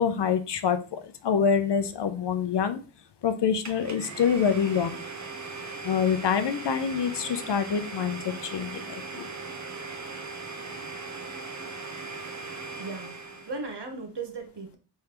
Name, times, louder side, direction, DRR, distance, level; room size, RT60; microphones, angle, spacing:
voice 1, 0.0-2.8 3.2-5.0 5.8-8.8 9.1-9.3, left 7 dB, 55° left, 0.6 m, -26 dB
Domestic sounds home sounds, 3.6-13.6, right 4 dB, 35° right, 0.9 m, -39 dB
voice 2, 12.8-14.8, right 3 dB, 55° right, 1.2 m, -37 dB
3.6 x 3.3 x 2.9 m
cardioid pair, 50°, 49 cm